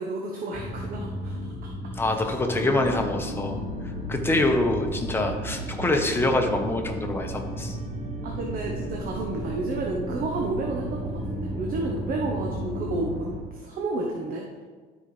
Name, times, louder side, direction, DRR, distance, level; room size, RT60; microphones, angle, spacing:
voice 1, 0.0-1.4 8.2-14.6, right 2 dB, 55° right, 0 dB, 1.0 m, -31 dB
sound 1, 0.5-13.2, equal, 5° right, 1.8 m, -36 dB
voice 2, 1.9-3.6 3.8-7.8, left 2 dB, 15° left, 3 dB, 1.0 m, -25 dB
sound 2, 2.5-13.4, right 1 dB, 40° right, 1.3 m, -36 dB
12.0 x 5.0 x 3.3 m, 1.5 s
cardioid pair, 110°, 17 cm